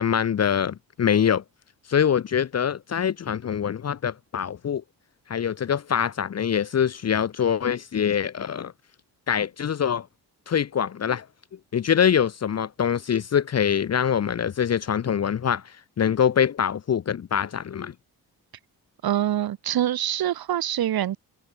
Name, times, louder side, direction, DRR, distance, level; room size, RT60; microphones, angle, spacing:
voice 1, 0.0-1.4 1.9-4.8 5.3-8.7 9.3-10.1 10.5-11.3 11.7-17.9, left 8 dB, 45° left, 1.0 m, -24 dB
voice 2, 19.0-21.2, right 11 dB, 80° right, 2.2 m, -25 dB
cardioid pair, 115°, 36 cm